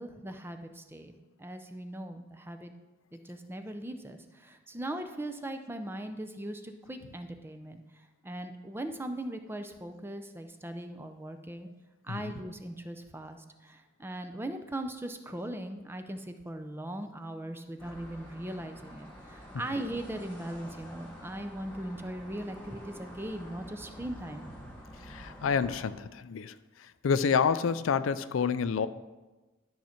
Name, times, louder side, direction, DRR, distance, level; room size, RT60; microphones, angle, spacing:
voice 1, 0.0-2.7 3.1-7.8 8.2-11.7 12.0-24.4, right 1 dB, 10° right, 7 dB, 0.6 m, -39 dB
sound 1, 17.8-25.9, equal, 10° left, 2.0 m, -48 dB
voice 2, 25.1-26.5 27.0-28.9, left 6 dB, 85° left, 14 dB, 0.4 m, -28 dB
12.0 x 5.8 x 4.4 m, 1.1 s
head